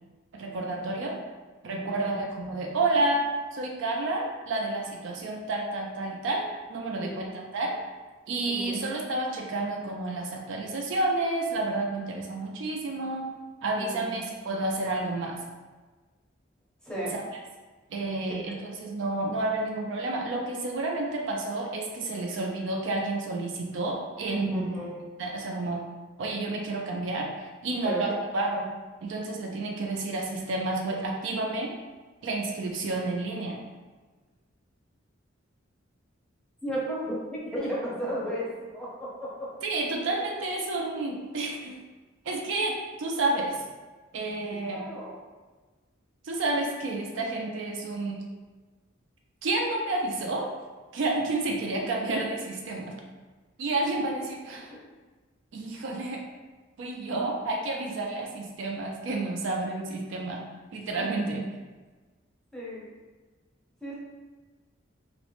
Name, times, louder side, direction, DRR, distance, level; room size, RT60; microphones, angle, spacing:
voice 1, 0.3-1.2 1.6-3.2 3.5-7.8 8.3-13.3 13.6-15.4 17.1-17.2 17.9-24.7 25.2-25.8 26.2-28.7 29.0-31.7 32.2-33.6 39.6-41.8 42.3-43.6 44.1-44.8 46.2-48.2 49.4-50.5 50.9-52.9 53.6-54.7 55.5-56.2 56.8-60.4 60.7-61.4, right 2 dB, 70° right, 0 dB, 0.4 m, -30 dB
voice 2, 1.7-2.1 6.9-7.3 8.5-8.8 13.7-14.1 16.8-17.1 24.5-25.0 27.8-28.1 36.6-38.4 38.7-39.5 44.7-45.2 62.5-62.8 63.8-63.9, equal, 5° left, -7 dB, 0.6 m, -34 dB
2.5 x 2.0 x 3.0 m, 1.3 s
head